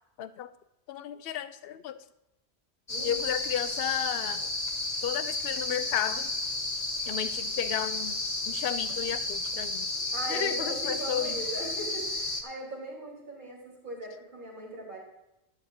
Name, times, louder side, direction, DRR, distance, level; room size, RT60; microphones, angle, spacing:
voice 1, 0.2-0.5 0.9-1.9 3.0-4.5 5.0-6.3 7.1-9.9 10.3-11.4, left 10 dB, 65° left, 12 dB, 0.8 m, -33 dB
sound 1, 2.9-12.4, left 2 dB, 35° left, 1.3 m, -32 dB
voice 2, 2.9-3.2 10.1-15.0, right 1 dB, 50° right, -6 dB, 4.6 m, -39 dB
14.0 x 10.5 x 2.8 m, 0.91 s
omnidirectional pair, 1.1 m